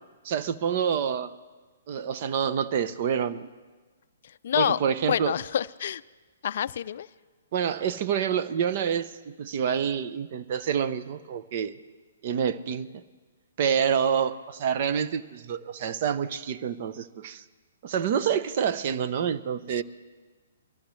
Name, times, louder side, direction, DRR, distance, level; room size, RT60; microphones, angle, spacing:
voice 1, 0.2-1.3 1.9-3.5 4.5-5.3 7.5-11.7 12.2-13.0 13.6-17.4 17.8-19.8, right 8 dB, 45° right, 12 dB, 0.8 m, -27 dB
voice 2, 4.4-4.8 5.1-6.0 6.4-7.1, left 9 dB, 60° left, 16 dB, 0.4 m, -27 dB
23.5 x 14.5 x 3.2 m, 1.3 s
hypercardioid pair, 135°, 0 cm